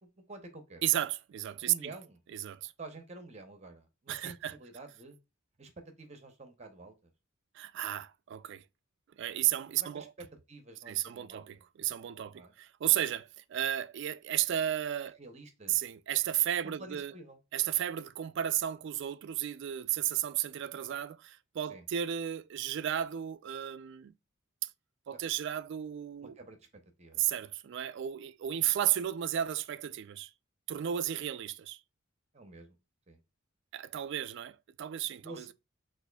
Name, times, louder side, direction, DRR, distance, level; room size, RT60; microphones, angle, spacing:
voice 1, 0.0-0.8 1.6-2.2 2.8-5.2 5.6-7.1 9.8-11.6 12.3-12.5 15.2-15.8 16.6-17.4 21.7-21.8 26.2-27.3 32.3-32.8 33.1-33.2 35.2-35.5, right 2 dB, 30° right, 0.7 m, -49 dB
voice 2, 0.8-1.9 2.3-2.7 4.1-4.6 7.5-8.6 9.2-10.1 10.9-15.2 15.7-17.1 17.5-24.1 24.6-24.7 25.1-26.3 27.2-30.3 30.7-31.8 33.7-35.5, right 11 dB, 55° right, 0.3 m, -33 dB
6.2 x 2.5 x 2.2 m
head